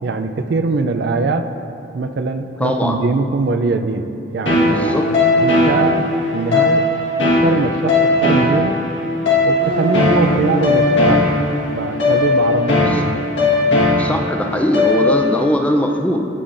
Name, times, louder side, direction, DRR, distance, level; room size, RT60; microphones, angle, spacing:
voice 1, 0.0-1.5 1.9-4.0 4.3-5.0 5.4-6.0 6.3-6.8 7.2-8.7 9.4-11.3 11.8-13.2, right 3 dB, 60° right, 8 dB, 0.4 m, -21 dB
voice 2, 2.6-3.0 4.6-5.0 12.9-13.0 14.0-16.3, equal, 5° left, 3 dB, 0.4 m, -20 dB
sound 1, 4.5-15.4, left 2 dB, 70° left, 1.3 m, -17 dB
16.5 x 5.5 x 2.5 m, 2.7 s
head